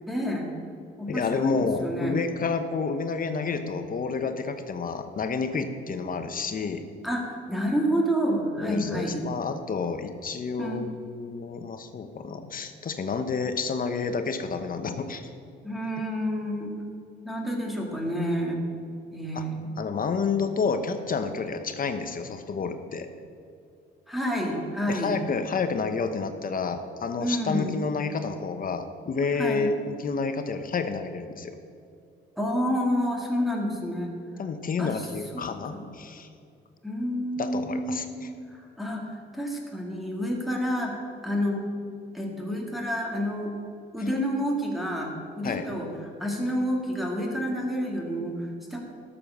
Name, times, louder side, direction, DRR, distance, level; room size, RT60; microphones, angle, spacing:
voice 1, 0.1-0.5 1.0-2.2 7.0-9.2 10.6-11.0 15.6-16.7 17.2-18.6 19.1-19.6 24.1-25.2 27.2-27.9 29.4-29.7 32.4-34.1 34.8-35.1 35.3-35.4 35.7-35.8 36.8-38.2 38.5-41.7 42.1-43.5 43.9-45.9 46.2-48.8, equal, ahead, -1 dB, 2.3 m, -29 dB
voice 2, 1.1-6.8 8.6-15.3 19.3-19.4 19.8-23.1 24.9-31.5 34.4-36.3 37.4-38.3 45.4-45.7, left 5 dB, 45° left, 8 dB, 0.9 m, -29 dB
12.5 x 7.0 x 6.2 m, 2.4 s
cardioid pair, 90°, 20 cm